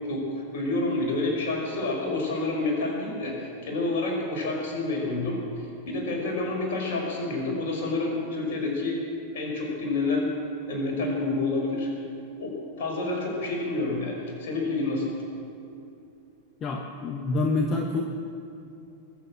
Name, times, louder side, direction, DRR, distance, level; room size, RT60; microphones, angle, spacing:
voice 1, 0.5-9.0 9.3-10.3 10.7-11.9 12.4-15.1, left 2 dB, 55° left, -1 dB, 5.0 m, -28 dB
voice 2, 16.6-18.0, left 3 dB, 30° left, 2 dB, 1.3 m, -27 dB
21.5 x 8.2 x 7.7 m, 2.7 s
figure-of-eight pair, 90°, 0 cm